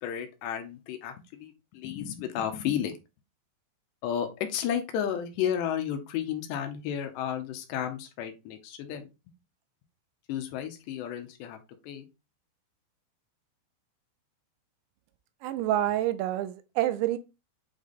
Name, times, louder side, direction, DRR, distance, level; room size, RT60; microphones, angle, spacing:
voice 1, 0.0-2.9 4.0-9.1 10.3-11.6 11.8-12.1, left 9 dB, 75° left, 3.1 m, -32 dB
voice 2, 15.4-17.2, right 13 dB, 85° right, 3.0 m, -27 dB
8.5 x 3.4 x 4.1 m
omnidirectional pair, 5.1 m